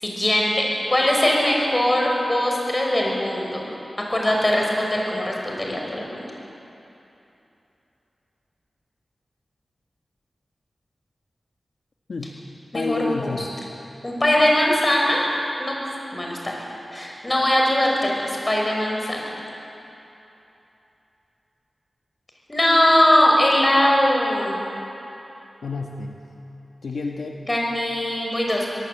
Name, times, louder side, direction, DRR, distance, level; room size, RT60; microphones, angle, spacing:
voice 1, 0.0-3.7 4.1-6.3 12.7-13.5 14.0-15.2 15.6-15.8 16.1-16.5 16.9-19.3 22.5-24.6 27.4-28.7, left 1 dB, 25° left, -1 dB, 6.0 m, -21 dB
voice 2, 12.7-13.5 25.6-26.2 26.8-27.4, left 4 dB, 75° left, 1 dB, 1.4 m, -29 dB
22.5 x 17.5 x 8.4 m, 2.9 s
wide cardioid pair, 80°, 0 cm